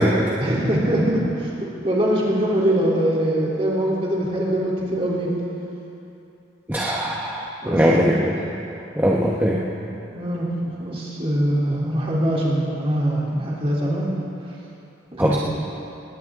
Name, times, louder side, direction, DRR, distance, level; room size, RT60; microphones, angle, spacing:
voice 1, 0.4-1.5 1.8-5.3 7.6-7.9 9.8-14.1 15.1-15.4, right 1 dB, 30° right, -5 dB, 3.3 m, -23 dB
voice 2, 6.7-8.3 9.0-9.6 15.2-15.4, equal, 10° right, -4 dB, 1.0 m, -20 dB
20.5 x 18.0 x 3.7 m, 2.8 s
head